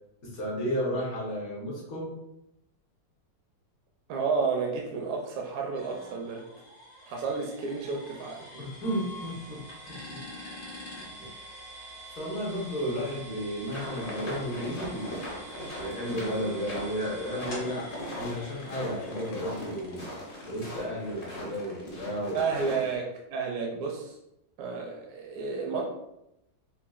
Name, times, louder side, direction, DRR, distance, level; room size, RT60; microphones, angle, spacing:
voice 1, 0.3-2.1 8.5-9.6 9.9-10.2 11.2-11.3 12.1-15.3 15.8-17.9 18.2-20.1 20.5-22.4, equal, 65° left, -5 dB, 1.6 m, -33 dB
voice 2, 4.1-6.5 7.0-8.5 22.3-24.2 24.6-25.8, right 5 dB, 75° right, 0 dB, 1.1 m, -31 dB
sound 1, 5.7-21.4, equal, 90° left, 2.0 m, -46 dB
sound 2, 13.7-22.9, equal, 40° left, 0.9 m, -39 dB
5.5 x 2.3 x 2.4 m, 0.85 s
omnidirectional pair, 1.7 m